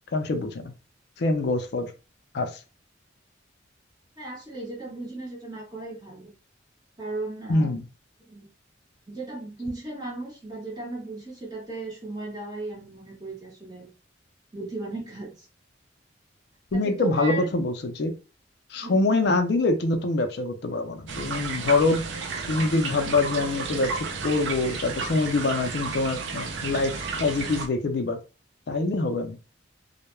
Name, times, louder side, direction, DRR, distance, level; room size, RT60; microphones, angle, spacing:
voice 1, 0.1-0.7 1.2-1.9 2.3-2.5 7.5-7.8 16.7-18.1 18.7-22.1 22.5-26.9 27.2-28.2 28.7-29.4, left 2 dB, 55° left, 7 dB, 0.4 m, -25 dB
voice 2, 4.2-6.3 7.0-7.8 8.3-8.5 9.1-13.9 14.5-15.5 16.7-17.5 18.8-19.2, right 2 dB, 20° right, -4 dB, 0.9 m, -36 dB
sound 1, 21.1-27.7, right 4 dB, 65° right, 0.4 m, -32 dB
2.2 x 2.1 x 3.0 m, 0.33 s
head